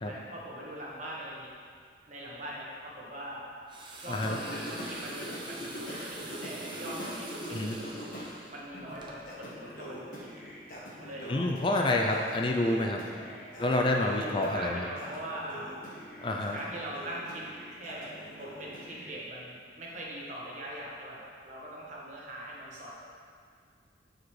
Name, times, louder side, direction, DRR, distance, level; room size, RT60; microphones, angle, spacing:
voice 1, 0.0-1.5 2.1-3.4 4.0-8.1 8.5-10.4 10.9-11.6 11.9-12.1 13.1-13.4 14.0-15.8 16.5-18.1 18.4-22.9, right 1 dB, 40° right, -5 dB, 1.3 m, -41 dB
sound 1, 3.7-9.2, right 3 dB, 25° right, 0.7 m, -46 dB
voice 2, 4.1-4.4 7.5-7.8 11.3-13.0 13.6-14.8 16.2-16.6, left 2 dB, 30° left, 1 dB, 0.4 m, -28 dB
Singing, 4.2-8.3 8.7-19.1, equal, 50° left, 1.2 m, -43 dB
9.7 x 4.8 x 3.2 m, 2.2 s
head